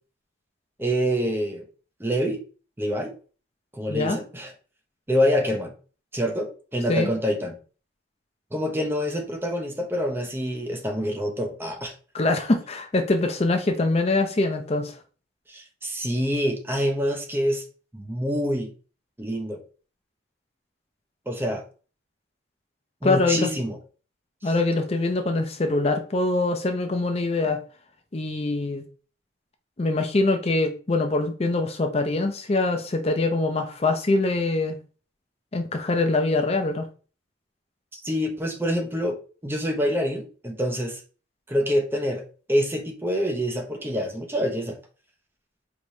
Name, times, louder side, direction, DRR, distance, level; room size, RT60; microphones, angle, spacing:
voice 1, 0.8-1.6 2.0-2.4 2.8-3.1 3.7-4.5 5.1-5.7 6.1-7.6 8.5-11.9 15.5-17.6 17.9-18.7 19.2-19.6 21.3-21.6 23.0-23.8 24.4-24.5 37.9-39.2 39.4-41.0 41.5-42.2 42.5-44.8, equal, 10° right, 3 dB, 0.6 m, -26 dB
voice 2, 12.1-15.0 23.0-23.5 24.4-27.6 28.1-28.8 29.8-34.8 35.5-36.9, left 2 dB, 30° left, 6 dB, 0.5 m, -23 dB
4.7 x 3.0 x 2.6 m, 0.38 s
head